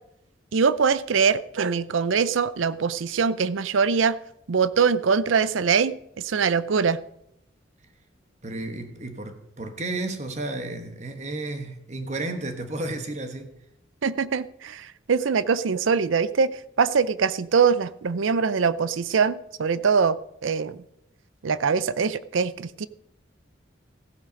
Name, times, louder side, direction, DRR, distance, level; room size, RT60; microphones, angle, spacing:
voice 1, 0.5-4.2 4.5-7.0 14.0-20.8 21.4-22.9, right 5 dB, 85° right, 16 dB, 0.5 m, -23 dB
voice 2, 8.4-13.5, right 2 dB, 35° right, 7 dB, 1.2 m, -32 dB
15.0 x 8.2 x 5.2 m, 0.80 s
head